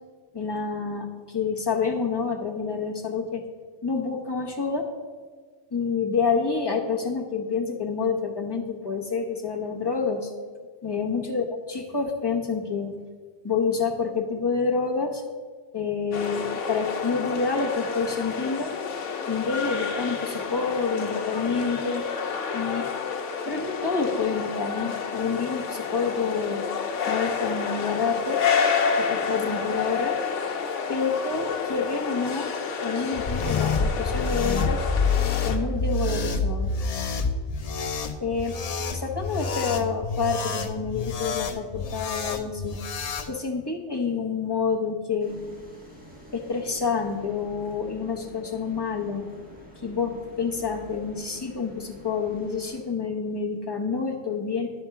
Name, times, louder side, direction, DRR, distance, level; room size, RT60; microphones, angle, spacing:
voice 1, 0.3-3.4 3.8-4.9 5.7-10.3 10.8-13.0 13.4-15.2 15.7-18.7 19.3-22.1 22.5-22.9 23.5-26.6 27.1-28.4 29.0-30.2 30.9-32.5 32.8-34.9 35.4-36.7 38.2-38.6 38.9-42.8 43.3-45.4 46.3-49.3 49.8-54.7, left 5 dB, 25° left, 0 dB, 0.9 m, -28 dB
sound 1, 16.1-35.6, left 6 dB, 80° left, 1.1 m, -29 dB
sound 2, 33.1-43.3, left 4 dB, 60° left, 0.4 m, -28 dB
sound 3, 45.2-52.8, left 1 dB, 5° right, 1.5 m, -48 dB
10.5 x 4.4 x 5.8 m, 1.5 s
omnidirectional pair, 1.2 m